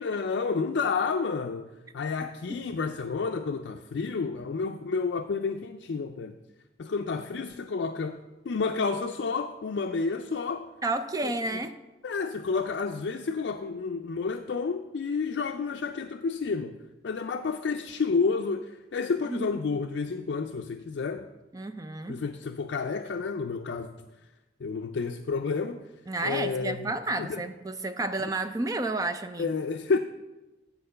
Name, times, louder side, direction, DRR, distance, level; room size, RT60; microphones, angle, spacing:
voice 1, 0.0-1.7 1.9-6.3 6.8-10.7 11.2-11.6 12.0-16.8 17.0-21.3 22.1-23.9 24.6-25.9 26.2-27.4 29.4-30.0, left 4 dB, 70° left, 5 dB, 0.4 m, -30 dB
voice 2, 10.8-11.7 19.3-19.6 21.5-22.2 26.1-29.5, right 2 dB, 20° right, 9 dB, 0.5 m, -31 dB
8.9 x 4.5 x 6.6 m, 1.1 s
head